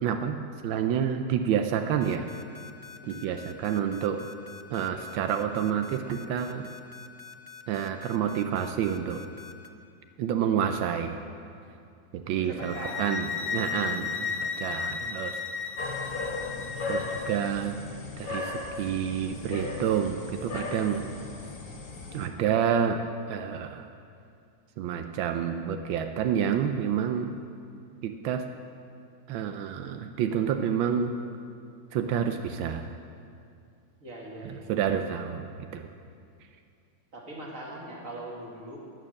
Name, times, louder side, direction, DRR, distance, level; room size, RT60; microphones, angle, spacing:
voice 1, 0.0-2.3 3.1-4.2 4.7-6.7 7.7-9.2 10.2-11.2 12.1-15.4 16.9-17.8 18.2-21.1 22.1-23.0 23.3-23.9 24.8-27.3 28.0-28.4 29.3-31.1 31.9-32.9 34.4-35.9, right 8 dB, 85° right, 6 dB, 1.4 m, -29 dB
sound 1, 2.0-9.7, left 6 dB, 20° right, 0.6 m, -46 dB
voice 2, 12.2-13.1 15.5-15.7 34.0-34.7 37.1-38.8, right 1 dB, 40° right, -2 dB, 2.4 m, -41 dB
sound 2, 12.6-17.5, left 5 dB, 70° left, 0.7 m, -34 dB
sound 3, 15.8-22.3, left 3 dB, 30° left, 1.2 m, -36 dB
16.0 x 9.1 x 6.5 m, 2.4 s
omnidirectional pair, 2.1 m